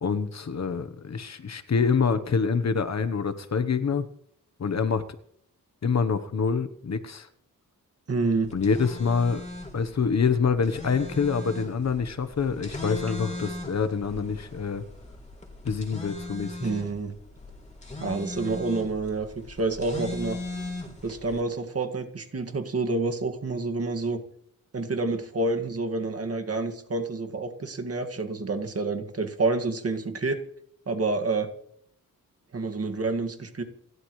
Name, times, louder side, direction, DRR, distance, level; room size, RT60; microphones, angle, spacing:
voice 1, 0.0-4.1 4.6-5.0 5.8-7.3 8.5-9.4 9.7-14.8 15.6-16.7, left 5 dB, 50° left, 11 dB, 1.1 m, -26 dB
voice 2, 8.1-8.5 16.6-17.1 18.0-20.4 21.0-24.2 24.7-30.4 30.9-31.5 32.5-33.6, right 3 dB, 45° right, 5 dB, 2.1 m, -28 dB
sound 1, 8.4-21.4, left 2 dB, 20° left, 3.5 m, -39 dB
28.5 x 12.5 x 3.2 m, 0.67 s
wide cardioid pair, 135°, 35 cm